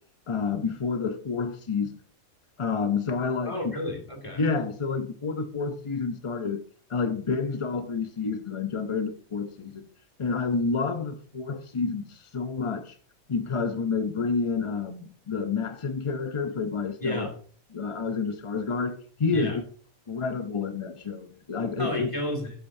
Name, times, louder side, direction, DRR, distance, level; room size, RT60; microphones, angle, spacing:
voice 1, 0.3-1.9 2.6-3.7 4.4-6.6 6.9-9.9 10.2-13.0 13.3-17.3 17.7-19.6 20.1-22.1, left 4 dB, 45° left, 0.4 m, -29 dB
voice 2, 3.5-4.4 17.0-17.4 19.3-19.6 21.8-22.7, left 1 dB, 20° left, 2.4 m, -32 dB
12.0 x 8.7 x 2.6 m
omnidirectional pair, 1.5 m